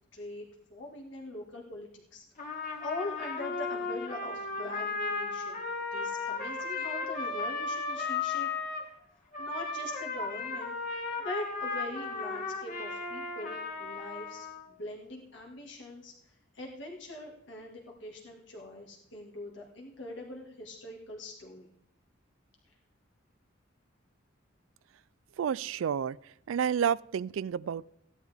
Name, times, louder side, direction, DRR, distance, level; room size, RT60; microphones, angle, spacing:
voice 1, 0.1-5.6 5.9-8.5 9.4-10.7 11.2-14.5 14.8-21.7 22.6-22.7, left 2 dB, 65° left, -1 dB, 2.1 m, -42 dB
Trumpet, 2.4-8.9 9.3-14.7, left 4 dB, 45° left, 2.2 m, -35 dB
voice 2, 25.4-26.2 26.5-27.8, right 8 dB, 85° right, 22 dB, 0.3 m, -30 dB
16.0 x 11.0 x 3.6 m, 0.79 s
head